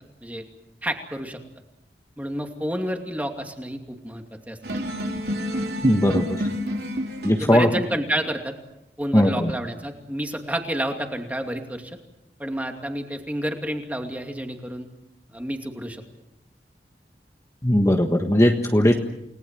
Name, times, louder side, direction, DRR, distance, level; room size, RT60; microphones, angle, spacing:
voice 1, 0.8-1.4 2.2-4.9 7.4-8.5 9.0-12.0 12.4-14.9 15.3-16.0, right 1 dB, 10° right, 4 dB, 2.5 m, -30 dB
sound 1, 4.6-7.5, equal, 65° right, 3.8 m, -28 dB
voice 2, 5.8-6.5 7.2-7.7 9.1-9.5 17.6-18.9, left 1 dB, 15° left, 3 dB, 1.5 m, -19 dB
29.5 x 19.0 x 7.5 m, 0.87 s
head